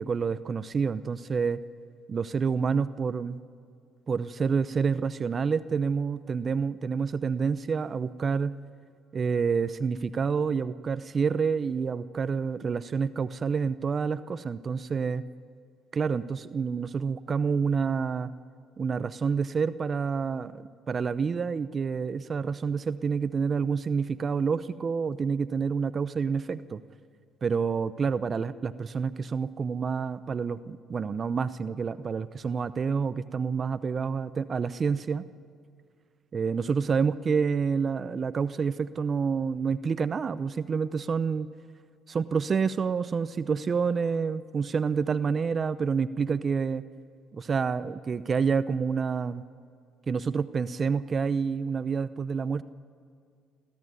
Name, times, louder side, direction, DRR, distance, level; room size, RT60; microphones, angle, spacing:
voice 1, 0.0-1.6 2.1-3.4 4.1-8.6 9.1-15.3 15.9-18.3 18.8-26.8 27.4-35.2 36.3-41.5 42.1-46.8 47.3-49.4 50.1-52.6, right 5 dB, 40° right, 14 dB, 0.7 m, -28 dB
29.0 x 13.5 x 9.5 m, 2.3 s
supercardioid pair, 85°, 0 cm